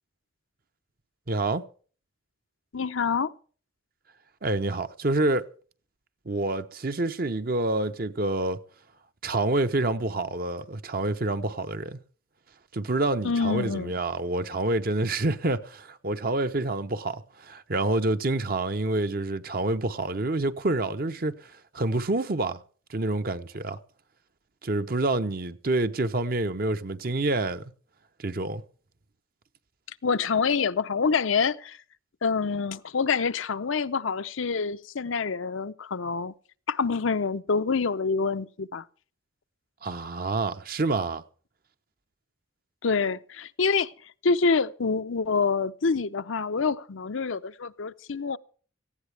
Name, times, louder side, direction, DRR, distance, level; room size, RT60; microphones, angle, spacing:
voice 1, 1.3-1.6 4.4-5.5 6.3-8.6 9.2-12.0 12.7-22.6 22.9-23.8 24.6-27.6 28.2-28.6 39.8-41.2, right 2 dB, 45° right, 0.8 m, -27 dB
voice 2, 2.7-3.3 13.2-13.9 30.0-31.8 32.2-36.3 36.7-38.8 42.8-43.9 44.2-48.4, left 5 dB, 75° left, 0.7 m, -26 dB
18.0 x 15.5 x 3.4 m
head